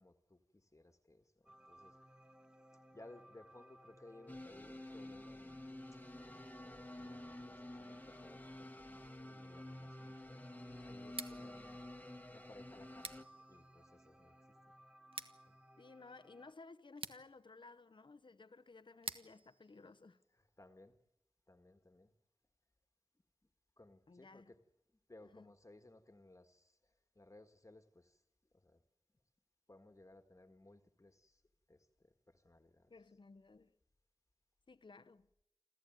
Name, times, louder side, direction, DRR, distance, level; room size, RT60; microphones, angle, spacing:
voice 1, 0.0-2.0 2.9-5.6 6.1-10.4 10.8-11.8 12.3-14.3 15.5-15.6 20.6-20.9 21.5-22.1 23.8-24.6 25.1-26.8 27.1-28.2 28.6-28.8 29.7-31.4 31.7-32.9, left 2 dB, 30° left, 1.7 m, -61 dB
sound 1, 1.5-16.5, right 1 dB, 10° right, 1.2 m, -62 dB
sound 2, 4.3-13.2, left 1 dB, 15° left, 1.4 m, -51 dB
Scissors, 11.0-20.8, right 3 dB, 65° right, 1.4 m, -53 dB
voice 2, 15.8-20.2 24.1-24.5 25.2-25.5 32.9-33.7 34.7-35.3, left 3 dB, 55° left, 0.9 m, -57 dB
28.0 x 14.0 x 9.2 m
cardioid pair, 45°, 10 cm